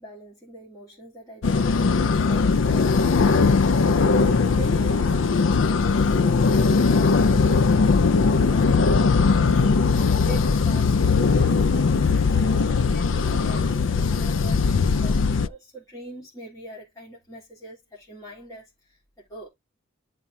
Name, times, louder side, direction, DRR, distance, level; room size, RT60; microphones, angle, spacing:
voice 1, 0.0-9.9 10.2-13.8 14.2-19.5, right 1 dB, 20° left, 3.4 m, -43 dB
sound 1, 1.4-15.5, left 4 dB, 70° left, 0.5 m, -20 dB
12.0 x 4.4 x 2.7 m
head